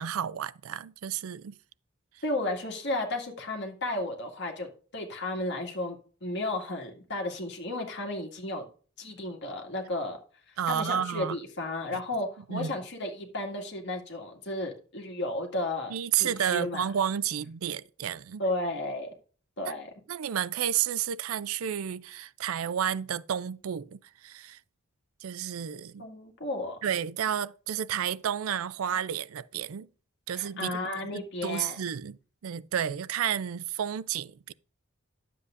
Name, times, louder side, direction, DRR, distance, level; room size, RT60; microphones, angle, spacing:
voice 1, 0.0-1.5 10.6-11.4 12.5-12.7 15.9-18.4 20.1-24.6 25.2-26.1 26.8-29.9 30.3-30.8 31.1-32.2 32.4-34.5, right 9 dB, 85° right, 0.4 m, -31 dB
voice 2, 2.2-8.7 9.0-10.2 10.7-16.9 18.4-19.1 19.6-19.9 26.0-26.8 30.3-31.8, left 2 dB, 55° left, 2.0 m, -33 dB
11.0 x 7.7 x 2.5 m
head